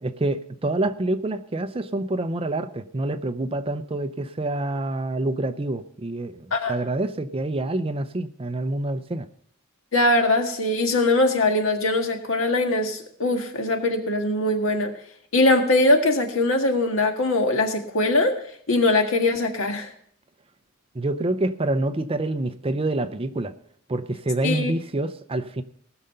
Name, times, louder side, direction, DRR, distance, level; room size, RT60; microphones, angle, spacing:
voice 1, 0.0-9.3 20.9-23.5 23.9-25.6, right 2 dB, 25° right, 11 dB, 0.6 m, -27 dB
voice 2, 9.9-14.9 15.3-18.4 18.7-19.9 24.4-24.7, left 2 dB, 70° left, 4 dB, 1.7 m, -21 dB
18.5 x 6.6 x 5.6 m, 0.64 s
head